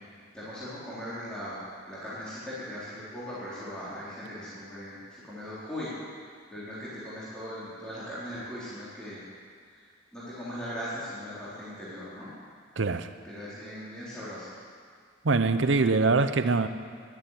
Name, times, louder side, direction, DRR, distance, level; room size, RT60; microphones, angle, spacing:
voice 1, 0.3-1.6 1.8-5.9 6.5-9.2 9.7-9.8 10.1-12.3 13.2-14.5, equal, 5° left, -11 dB, 3.8 m, -39 dB
voice 2, 12.8-13.1 15.2-16.7, right 3 dB, 70° right, 10 dB, 0.7 m, -23 dB
11.5 x 10.5 x 9.4 m, 2.1 s
head